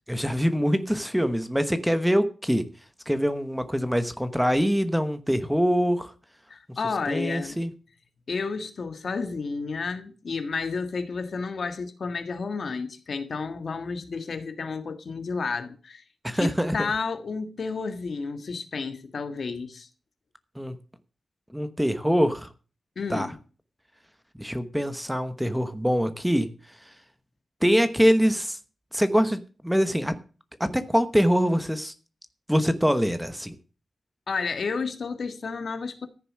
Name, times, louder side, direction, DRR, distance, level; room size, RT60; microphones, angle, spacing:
voice 1, 0.1-2.6 3.1-6.1 7.1-7.7 16.2-16.9 20.6-20.7 21.5-22.5 23.1-23.3 24.4-26.5 27.6-28.6 28.9-29.4 29.6-30.1 30.6-31.9 32.5-33.5, equal, ahead, 1.0 m, -24 dB
voice 2, 6.5-7.6 8.3-16.0 16.4-19.9 22.9-23.3 34.3-36.1, left 4 dB, 55° left, 1.6 m, -31 dB
14.5 x 6.9 x 7.4 m
wide cardioid pair, 140°, 0 cm